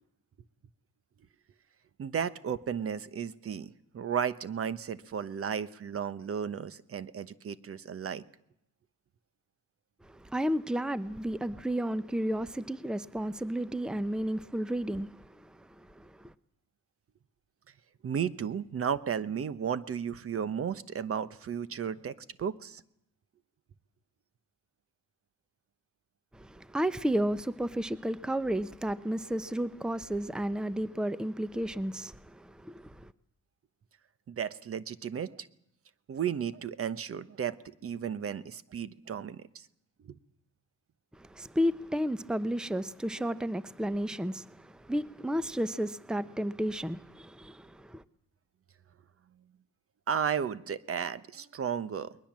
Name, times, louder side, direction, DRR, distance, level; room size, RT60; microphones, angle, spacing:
voice 1, 2.0-8.2 18.0-22.8 34.3-35.5 36.1-37.6 37.8-39.7 40.0-40.2 50.1-52.2, right 7 dB, 50° right, 1.1 m, -34 dB
voice 2, 10.0-16.3 26.3-33.1 41.1-48.0, equal, 5° right, 0.8 m, -32 dB
21.5 x 20.0 x 7.5 m
cardioid pair, 90°, 30 cm